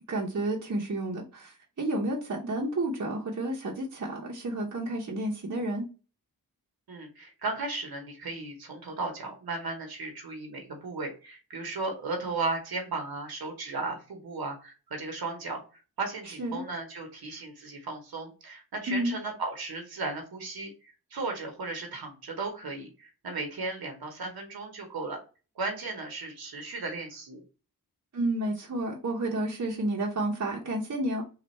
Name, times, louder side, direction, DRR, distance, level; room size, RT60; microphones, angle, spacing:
voice 1, 0.1-5.9 16.3-16.6 18.9-19.2 28.1-31.2, right 1 dB, 50° right, -2 dB, 0.8 m, -31 dB
voice 2, 6.9-15.6 16.0-25.2 25.6-27.4, right 3 dB, 90° right, 3 dB, 0.9 m, -35 dB
3.3 x 2.4 x 4.1 m, 0.33 s
wide cardioid pair, 95°, 36 cm